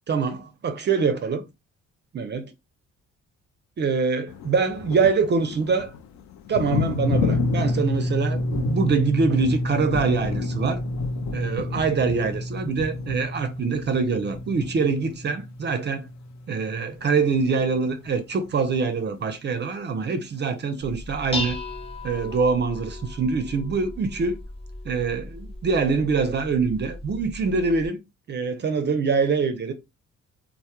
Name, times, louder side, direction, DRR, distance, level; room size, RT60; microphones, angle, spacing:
voice 1, 0.1-1.4 2.1-2.5 3.8-5.9 6.5-10.8 11.3-16.1 16.5-21.6 22.0-24.4 24.9-28.0 28.3-29.7, right 5 dB, 35° right, 0.4 m, -24 dB
sound 1, 4.3-15.4 15.8-16.1 16.6-16.7 17.0-18.2 20.4-20.5 22.3-22.4, left 8 dB, 65° left, 0.5 m, -33 dB
sound 2, 7.0-17.5, equal, 85° left, 0.9 m, -30 dB
Dishes pots and pans, 20.8-27.9, left 2 dB, 20° left, 0.6 m, -36 dB
2.1 x 2.0 x 2.8 m
cardioid pair, 90°, 30 cm